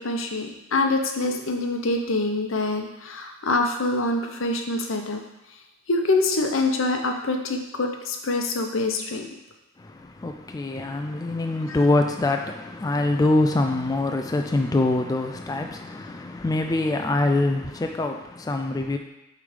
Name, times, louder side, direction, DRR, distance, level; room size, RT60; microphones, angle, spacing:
voice 1, 0.0-5.2 5.9-9.3 11.7-11.8, left 2 dB, 75° left, 0.9 m, -25 dB
voice 2, 9.8-19.0, left 2 dB, 20° left, 0.3 m, -24 dB
8.4 x 3.4 x 5.1 m
head